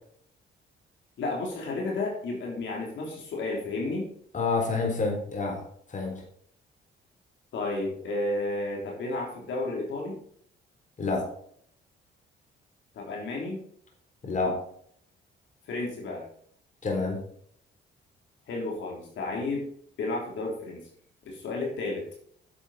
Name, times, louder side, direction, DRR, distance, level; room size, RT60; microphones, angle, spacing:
voice 1, 1.2-4.1 7.5-10.2 12.9-13.6 15.7-16.2 18.5-19.6 20.0-20.8 21.2-22.1, left 2 dB, 70° left, -1 dB, 3.4 m, -32 dB
voice 2, 4.3-6.2 11.0-11.3 14.2-14.6 16.8-17.2, left 3 dB, 40° left, 1 dB, 3.7 m, -28 dB
10.0 x 7.2 x 4.2 m, 0.63 s
cardioid pair, 90°, 20 cm